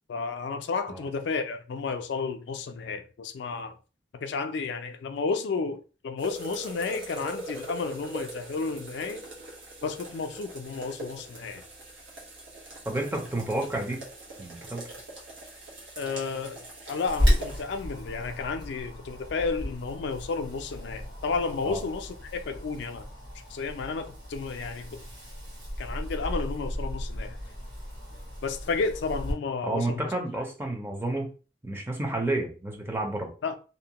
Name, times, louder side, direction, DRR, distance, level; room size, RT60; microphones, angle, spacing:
voice 1, 0.1-3.8 4.2-5.8 6.0-9.2 9.8-11.6 16.0-23.1 23.5-25.0 25.8-27.4 28.4-30.1 33.4-33.6, left 4 dB, 70° left, 0.3 m, -32 dB
sound 1, 6.2-17.6, right 2 dB, 85° right, 1.1 m, -42 dB
voice 2, 12.8-14.0 14.4-14.9 21.7-21.8 29.6-31.3 31.6-33.3, right 2 dB, 10° right, 0.4 m, -30 dB
Wind, 17.1-29.3, equal, 70° right, 1.4 m, -33 dB
2.6 x 2.1 x 2.8 m
head